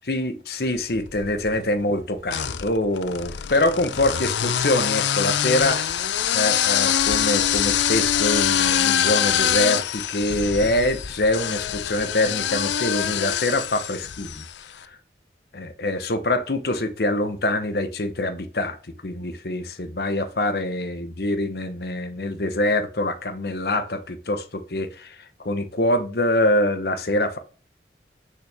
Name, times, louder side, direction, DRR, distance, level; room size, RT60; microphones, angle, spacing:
voice 1, 0.0-14.4 14.8-15.0 15.5-18.8 19.0-27.4, left 1 dB, 65° left, 1.0 m, -25 dB
sound 1, 0.9-1.6 2.3-14.6, left 9 dB, 85° left, 0.5 m, -24 dB
6.5 x 5.6 x 3.4 m
head